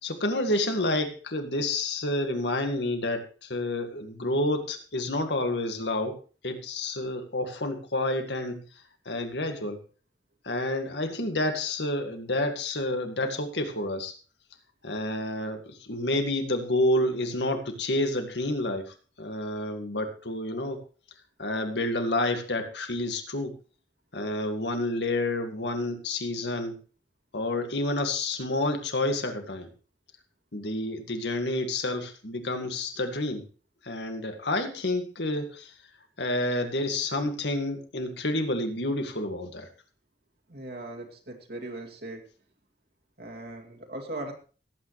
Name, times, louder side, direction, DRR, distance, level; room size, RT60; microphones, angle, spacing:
voice 1, 0.0-6.1 6.4-8.6 9.1-9.8 10.4-14.1 14.8-20.8 21.4-23.5 24.1-26.8 27.3-29.7 30.5-33.4 33.8-35.8 36.2-39.7, left 1 dB, 75° left, 5 dB, 1.9 m, -29 dB
voice 2, 40.5-42.3 43.2-44.3, right 2 dB, 60° right, 2 dB, 2.4 m, -39 dB
17.0 x 8.9 x 3.2 m, 0.38 s
head